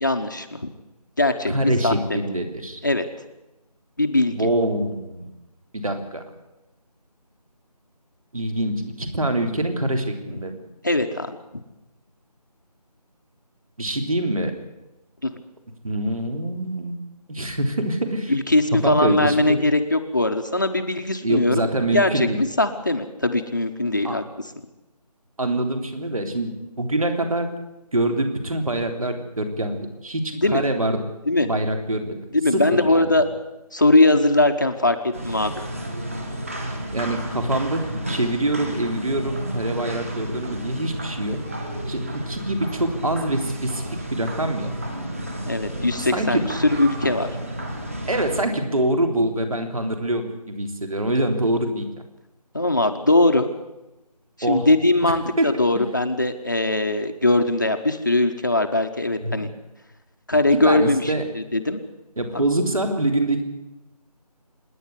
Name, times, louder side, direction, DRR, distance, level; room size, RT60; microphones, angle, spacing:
voice 1, 0.0-0.7 1.2-2.2 2.8-3.1 4.0-4.4 10.8-11.4 15.2-15.3 18.3-21.7 21.9-24.2 30.4-30.6 31.3-31.5 32.3-33.2 33.7-35.0 35.2-35.5 45.5-47.3 52.5-53.5 54.5-59.5 60.3-61.8 62.3-62.4, left 2 dB, 30° left, 6 dB, 1.0 m, -20 dB
voice 2, 1.5-2.8 4.3-5.3 5.7-6.2 8.3-10.6 13.8-14.5 15.8-17.0 17.3-18.3 18.8-19.6 21.2-22.4 24.0-24.2 25.4-27.5 27.9-31.0 31.4-32.2 32.5-33.2 36.9-41.4 41.9-43.8 44.1-44.8 46.1-46.5 48.1-51.9 54.4-54.7 55.0-55.5 59.2-59.4 60.6-61.3 62.2-63.4, right 1 dB, 60° right, 6 dB, 3.4 m, -25 dB
sound 1, 35.1-48.5, right 1 dB, 20° right, 1.8 m, -32 dB
26.5 x 10.0 x 9.9 m, 0.98 s
figure-of-eight pair, 175°, 21 cm